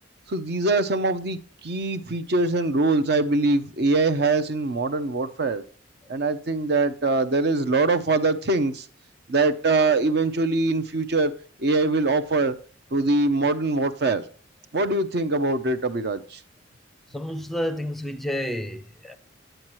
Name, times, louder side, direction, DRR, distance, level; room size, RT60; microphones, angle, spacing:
voice 1, 0.3-5.6 6.1-8.9 9.3-11.3 11.6-12.6 12.9-14.2 14.7-16.4, right 3 dB, 55° right, 0.7 m, -23 dB
voice 2, 17.1-19.2, equal, ahead, 0.5 m, -30 dB
9.1 x 8.8 x 3.0 m
head